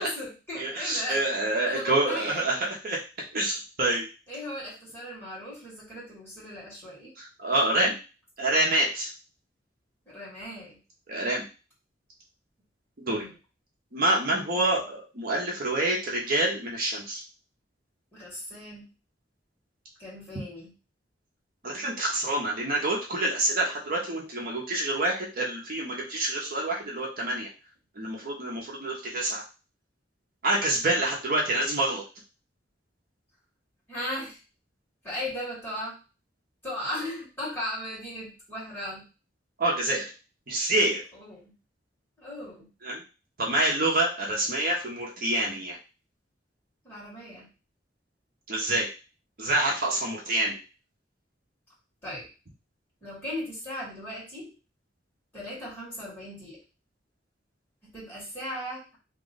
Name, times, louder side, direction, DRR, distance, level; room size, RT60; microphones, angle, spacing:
voice 1, 0.0-1.2 1.7-2.7 4.3-7.1 10.1-10.8 13.1-13.3 14.6-14.7 18.1-18.9 20.0-20.7 33.9-34.4 35.0-36.0 36.6-39.0 41.1-41.5 42.2-42.7 46.8-47.5 52.0-52.3 53.0-54.5 55.3-56.6 57.9-58.8, left 1 dB, 10° left, -7 dB, 1.9 m, -37 dB
voice 2, 0.5-3.0 3.3-4.1 7.2-8.0 8.4-9.1 11.1-11.4 13.0-13.2 13.9-17.2 21.6-27.5 28.0-29.4 30.4-32.0 39.6-40.0 40.5-41.0 42.8-43.0 43.4-45.8 48.5-48.9 49.4-50.6, right 1 dB, 50° right, -2 dB, 0.9 m, -27 dB
3.0 x 2.4 x 3.9 m, 0.32 s
head